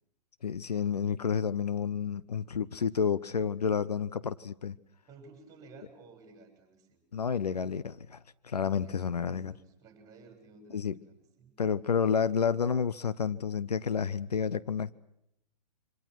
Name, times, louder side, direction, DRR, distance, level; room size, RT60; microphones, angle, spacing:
voice 1, 0.4-4.8 7.1-8.2 8.4-9.5 10.7-11.0 11.6-14.9, left 6 dB, 70° left, 0.9 m, -30 dB
voice 2, 5.1-7.0 8.8-11.5, right 3 dB, 15° right, 6.8 m, -54 dB
27.0 x 25.5 x 6.0 m
figure-of-eight pair, 115°, 21 cm